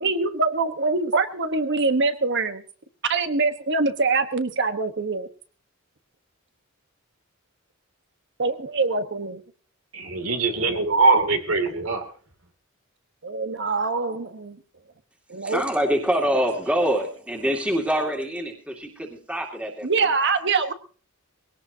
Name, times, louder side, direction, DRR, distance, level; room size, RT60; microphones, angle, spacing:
voice 1, 0.0-2.6 3.1-5.3 8.4-9.4 13.2-14.6 15.3-15.6 19.8-20.7, right 4 dB, 55° right, 9 dB, 1.3 m, -24 dB
voice 2, 9.9-12.0, right 3 dB, 85° right, 5 dB, 2.8 m, -21 dB
voice 3, 15.4-20.1, equal, 5° right, 1 dB, 2.3 m, -25 dB
21.0 x 17.5 x 2.8 m, 0.40 s
head